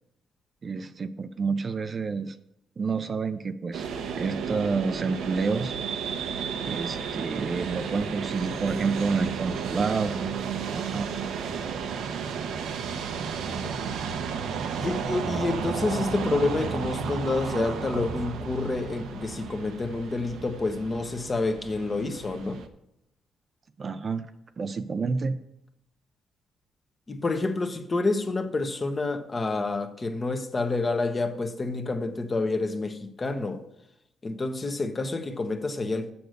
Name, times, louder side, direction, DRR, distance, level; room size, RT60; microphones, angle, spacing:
voice 1, 0.6-2.4 2.8-3.9 4.2-5.7 6.7-10.3 10.7-11.1 23.8-24.3 24.6-25.4, right 4 dB, 40° right, 0.6 m, -29 dB
sound 1, 3.7-22.7, right 6 dB, 80° right, 0.9 m, -33 dB
voice 2, 14.8-22.6 27.1-33.6 34.2-36.1, left 3 dB, 30° left, 1.1 m, -28 dB
7.7 x 7.1 x 6.6 m
cardioid pair, 90°, 0 cm